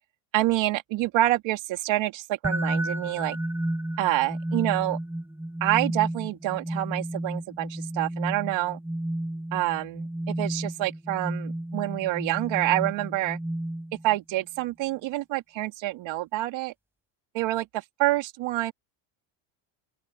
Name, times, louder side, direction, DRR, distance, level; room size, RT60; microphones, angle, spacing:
voice 1, 0.3-3.4 4.0-5.0 5.6-8.8 9.5-10.1 10.4-13.4 14.0-16.7 17.3-18.7, right 16 dB, 65° right, 2.6 m, -27 dB
sound 1, 2.4-14.2, right 1 dB, 5° right, 4.9 m, -32 dB
open air
cardioid pair, 115°, 49 cm